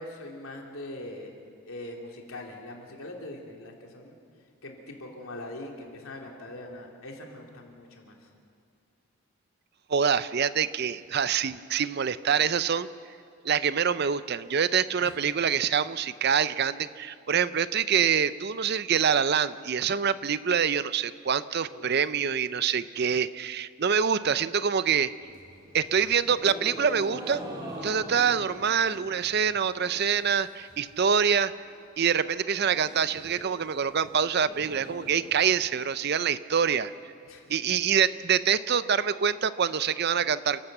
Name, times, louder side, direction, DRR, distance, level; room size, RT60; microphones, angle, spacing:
voice 1, 0.0-1.3 1.6-4.2 4.6-8.3 15.0-15.2 21.7-21.9 37.2-37.6, left 1 dB, 75° left, 0 dB, 3.1 m, -42 dB
voice 2, 9.9-12.9 13.4-25.1 25.7-27.4 27.8-31.5 32.0-36.9 37.5-40.6, right 7 dB, 50° right, 15 dB, 0.5 m, -25 dB
sound 1, 25.2-30.3 30.5-31.1 31.4-31.5 31.7-31.8 32.1-36.1, right 1 dB, 20° right, 3.5 m, -44 dB
29.0 x 11.5 x 7.9 m, 2.3 s
head